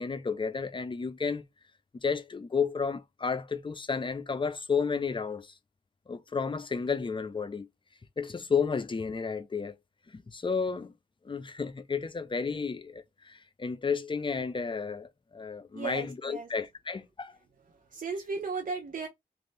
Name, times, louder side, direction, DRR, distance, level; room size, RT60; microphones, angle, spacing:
voice 1, 0.0-1.4 2.0-5.5 6.1-7.7 8.2-9.7 10.1-10.9 11.2-17.4, left 5 dB, 30° left, 0.5 m, -32 dB
voice 2, 15.7-16.5 17.9-19.1, right 4 dB, 55° right, 0.8 m, -35 dB
2.7 x 2.5 x 3.3 m
cardioid pair, 70°, 17 cm